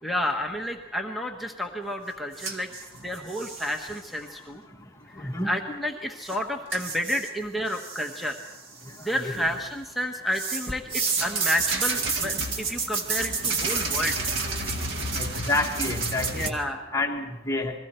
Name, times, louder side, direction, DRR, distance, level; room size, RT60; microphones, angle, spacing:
voice 1, 0.0-2.7 3.0-4.6 5.1-8.4 9.0-14.2 16.3-16.9, equal, ahead, 3 dB, 1.2 m, -30 dB
sound 1, 2.4-3.9 6.3-6.4 6.7-7.3 7.7-8.5 8.9-9.6 10.3-16.5, right 4 dB, 75° right, 2.0 m, -30 dB
voice 2, 5.2-5.5 9.1-9.3 15.2-16.5 16.9-17.7, left 2 dB, 15° left, 1 dB, 1.7 m, -28 dB
29.0 x 21.5 x 4.4 m, 1.0 s
head